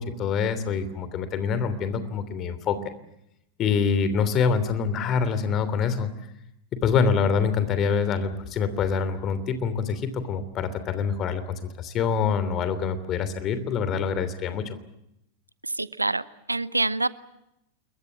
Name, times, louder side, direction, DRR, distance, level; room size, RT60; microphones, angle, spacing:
voice 1, 0.0-2.9 3.6-6.1 6.8-14.8, left 6 dB, 30° left, 12 dB, 3.0 m, -25 dB
voice 2, 15.6-17.1, right 2 dB, 85° right, 18 dB, 0.8 m, -26 dB
28.5 x 22.5 x 7.2 m, 0.83 s
figure-of-eight pair, 90°, 0 cm